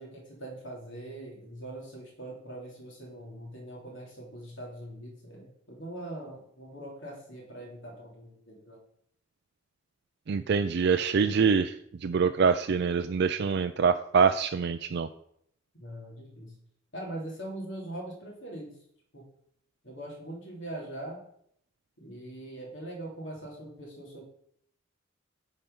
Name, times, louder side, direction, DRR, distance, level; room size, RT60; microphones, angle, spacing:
voice 1, 0.0-8.8 15.8-16.5 16.9-18.7 19.1-19.2 19.8-21.2 22.0-24.2, right 1 dB, 65° left, -2 dB, 3.0 m, -42 dB
voice 2, 10.3-11.7 12.0-15.1, right 6 dB, 55° right, 8 dB, 0.4 m, -25 dB
9.9 x 4.5 x 5.4 m, 0.68 s
head